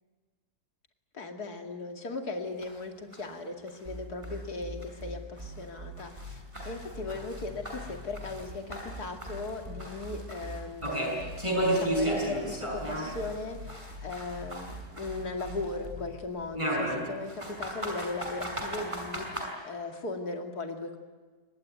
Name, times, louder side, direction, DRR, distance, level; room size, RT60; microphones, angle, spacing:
voice 1, 1.1-21.0, left 3 dB, 65° left, 4 dB, 2.9 m, -38 dB
sound 1, 2.6-2.7 3.1-3.2 3.7-3.8 4.2-4.3 4.8-4.9 5.4-5.5 6.0-8.5 8.7-13.4 13.7-15.7 16.6-19.5, right 1 dB, 15° right, 5.4 m, -33 dB
sound 2, 3.8-16.2, left 1 dB, 35° right, 4.1 m, -43 dB
24.5 x 20.0 x 9.3 m, 1.4 s
omnidirectional pair, 1.8 m